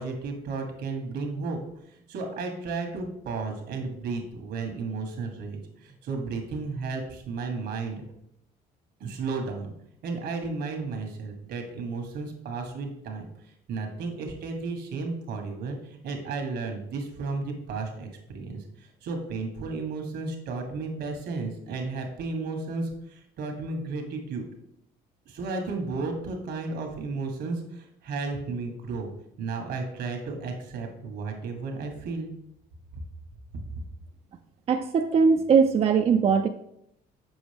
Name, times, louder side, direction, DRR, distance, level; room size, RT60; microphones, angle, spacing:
voice 1, 0.0-1.6 2.1-8.0 9.0-9.7 10.0-13.2 13.7-18.6 19.0-24.4 25.3-29.1 29.4-32.3 33.5-33.6, right 4 dB, 75° right, 3 dB, 1.5 m, -33 dB
voice 2, 34.7-36.5, right 5 dB, 35° right, 6 dB, 0.4 m, -20 dB
7.1 x 5.1 x 3.4 m, 0.77 s
cardioid pair, 110°, 17 cm